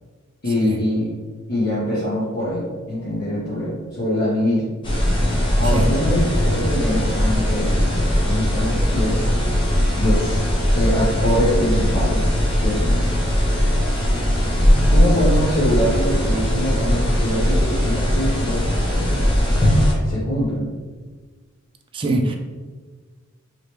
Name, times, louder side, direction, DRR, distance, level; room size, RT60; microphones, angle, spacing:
voice 1, 0.4-1.1 1.5-4.8 5.5-7.8 8.3-9.3 10.0-10.4 10.7-12.3 12.5-13.0 14.9-19.2 20.0-20.7, equal, 50° left, -10 dB, 0.9 m, -23 dB
sound 1, 4.8-19.9, equal, 25° left, 0.7 m, -19 dB
voice 2, 21.9-22.3, right 2 dB, 25° right, 3 dB, 0.3 m, -22 dB
3.2 x 2.9 x 2.9 m, 1.4 s
head